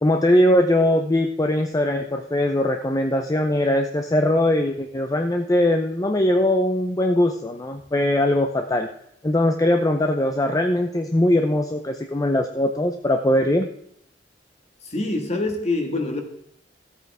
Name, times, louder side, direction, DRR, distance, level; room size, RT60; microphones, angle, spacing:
voice 1, 0.0-8.9 9.2-13.7, left 1 dB, 20° left, 4 dB, 0.6 m, -21 dB
voice 2, 14.8-16.2, left 2 dB, 40° left, 4 dB, 1.6 m, -25 dB
14.5 x 8.5 x 3.5 m, 0.69 s
head